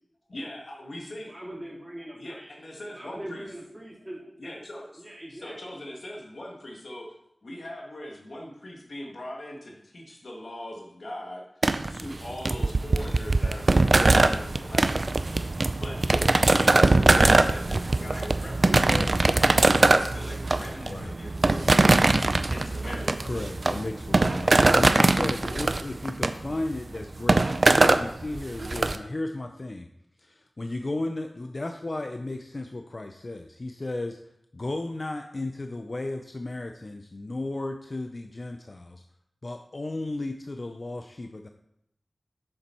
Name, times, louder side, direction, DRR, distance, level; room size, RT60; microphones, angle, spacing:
voice 1, 0.3-1.3 2.2-3.5 4.4-5.0 5.3-7.1 7.4-11.4 11.9-15.0 15.8-21.8 22.5-23.3, left 1 dB, 70° left, -1 dB, 1.8 m, -40 dB
voice 2, 1.3-2.5 2.9-4.2 5.0-5.6 22.9-23.2, right 1 dB, 15° right, -7 dB, 3.8 m, -41 dB
sound 1, 11.6-29.0, right 2 dB, 50° right, 0.5 m, -22 dB
voice 3, 18.8-19.2 20.8-21.1 23.2-29.9 30.2-34.2 34.5-39.0 39.4-41.5, left 2 dB, 45° left, 6 dB, 0.5 m, -34 dB
7.4 x 6.9 x 4.5 m, 0.77 s
wide cardioid pair, 70°, 0 cm